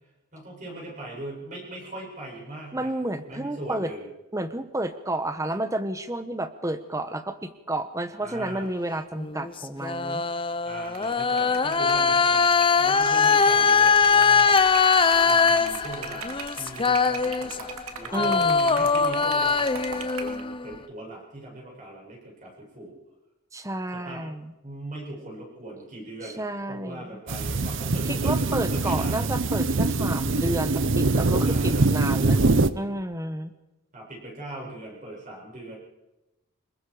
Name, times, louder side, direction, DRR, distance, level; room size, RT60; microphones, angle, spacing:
voice 1, 0.3-2.9 3.3-4.1 8.2-8.7 10.6-14.8 15.2-22.9 23.9-24.2 24.6-29.3 31.4-31.9 33.9-35.7, right 1 dB, 35° right, -2 dB, 7.8 m, -40 dB
voice 2, 2.7-3.9 4.3-10.2 18.1-18.9 23.5-24.5 26.2-27.2 28.0-32.4 32.7-33.5, right 1 dB, 15° right, 10 dB, 1.2 m, -31 dB
sound 1, 9.2-17.8 18.1-20.7, left 5 dB, 25° left, 0.7 m, -22 dB
Liquid, 10.9-20.4, right 5 dB, 75° right, 2.3 m, -40 dB
sound 2, 27.3-32.7, right 3 dB, 60° right, 0.8 m, -23 dB
26.0 x 22.0 x 5.1 m, 0.99 s
head